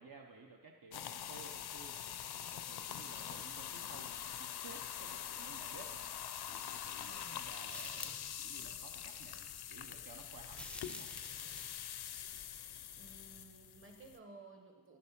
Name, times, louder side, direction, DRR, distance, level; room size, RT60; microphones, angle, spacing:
voice 1, 0.0-6.0 6.5-11.1, right 4 dB, 60° right, 1 dB, 0.9 m, -56 dB
sound 1, 0.9-14.2, left 10 dB, 85° left, 0.5 m, -44 dB
voice 2, 7.1-7.5 13.0-15.0, right 3 dB, 35° right, 3 dB, 1.2 m, -56 dB
sound 2, 7.7-8.4 10.5-11.9, left 1 dB, 5° left, 0.4 m, -49 dB
10.5 x 7.4 x 5.9 m, 1.4 s
wide cardioid pair, 100°, 38 cm